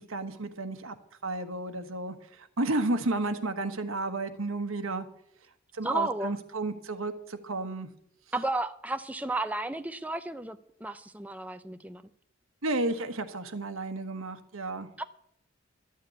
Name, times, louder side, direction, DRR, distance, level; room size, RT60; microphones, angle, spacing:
voice 1, 0.1-0.9 1.2-5.1 5.7-7.9 12.6-14.9, right 2 dB, 85° right, 1.3 m, -32 dB
voice 2, 5.8-6.3 8.3-12.0 15.0-15.1, right 2 dB, 5° right, 0.5 m, -33 dB
13.0 x 6.7 x 9.1 m
head